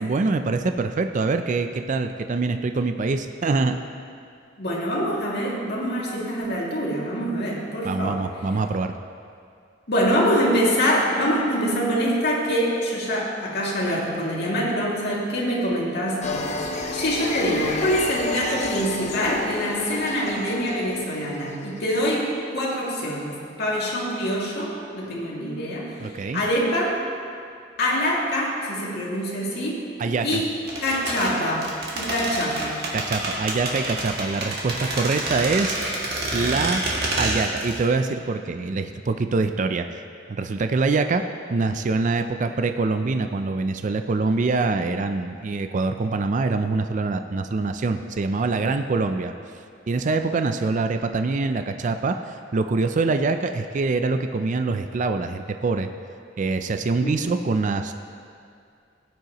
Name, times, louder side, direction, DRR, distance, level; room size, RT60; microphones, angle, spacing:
voice 1, 0.0-3.8 7.8-8.9 26.0-26.4 30.0-30.3 32.9-35.8 36.3-36.8 37.2-40.0 40.3-41.2 41.5-49.3 49.9-55.9 56.4-57.9, right 3 dB, 45° right, 7 dB, 0.4 m, -24 dB
voice 2, 4.6-8.2 9.9-27.0 27.8-29.9 30.2-32.9 57.0-57.3, equal, 60° left, -5 dB, 2.4 m, -25 dB
sound 1, 16.2-21.8, left 3 dB, 40° left, 1.0 m, -30 dB
sound 2, 30.7-37.8 38.1-38.2, right 2 dB, 60° right, 2.1 m, -28 dB
17.5 x 9.2 x 3.0 m, 2.4 s
head